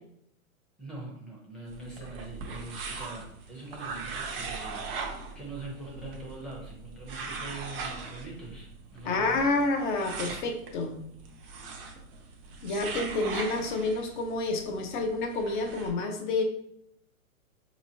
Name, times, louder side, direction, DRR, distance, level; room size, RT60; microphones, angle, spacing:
voice 1, 0.8-9.5, right 2 dB, ahead, -6 dB, 0.7 m, -43 dB
sound 1, 1.7-15.9, right 4 dB, 40° right, 0.7 m, -40 dB
voice 2, 9.0-11.0 12.6-16.4, left 3 dB, 35° left, 4 dB, 0.6 m, -29 dB
4.1 x 3.0 x 2.7 m, 0.73 s
hypercardioid pair, 140°, 43 cm